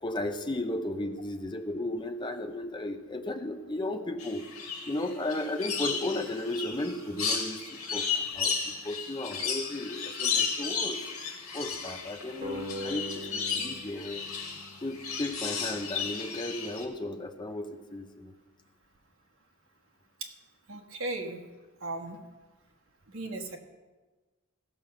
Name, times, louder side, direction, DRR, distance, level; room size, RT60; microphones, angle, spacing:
voice 1, 0.0-4.4 4.8-14.2 14.8-18.3, left 1 dB, 20° left, 6 dB, 0.8 m, -35 dB
sound 1, 4.2-16.8, left 6 dB, 70° left, 2.0 m, -34 dB
sound 2, 12.4-15.6, left 1 dB, 30° right, 1.7 m, -42 dB
voice 2, 20.7-21.4 21.8-22.2 23.1-23.6, right 2 dB, 65° right, 3 dB, 1.4 m, -36 dB
16.0 x 5.5 x 6.7 m, 1.3 s
head